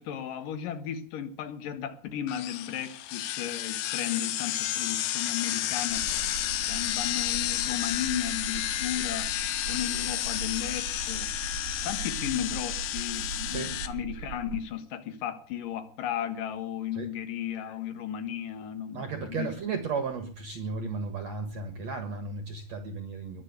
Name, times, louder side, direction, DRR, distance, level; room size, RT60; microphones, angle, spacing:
voice 1, 0.0-6.1 6.7-9.3 9.7-11.3 11.8-19.5, left 10 dB, 60° left, 2.5 m, -35 dB
sound 1, 2.3-13.9, left 13 dB, 80° left, 3.2 m, -31 dB
sound 2, 5.9-14.6, right 8 dB, 75° right, 1.8 m, -40 dB
voice 2, 18.9-23.4, right 4 dB, 55° right, 2.0 m, -34 dB
21.5 x 8.1 x 8.3 m
omnidirectional pair, 5.2 m